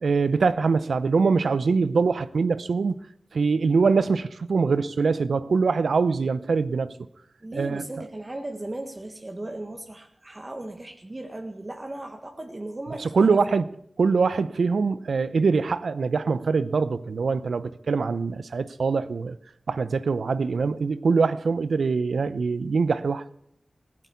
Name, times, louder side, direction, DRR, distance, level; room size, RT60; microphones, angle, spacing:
voice 1, 0.0-3.0 3.3-7.0 7.5-7.8 13.0-13.7 14.0-19.4 19.7-23.2, right 4 dB, 85° right, 0.6 m, -23 dB
voice 2, 7.4-13.4, right 1 dB, 30° right, 1.5 m, -37 dB
16.0 x 8.9 x 8.3 m
cardioid pair, 55°, 0 cm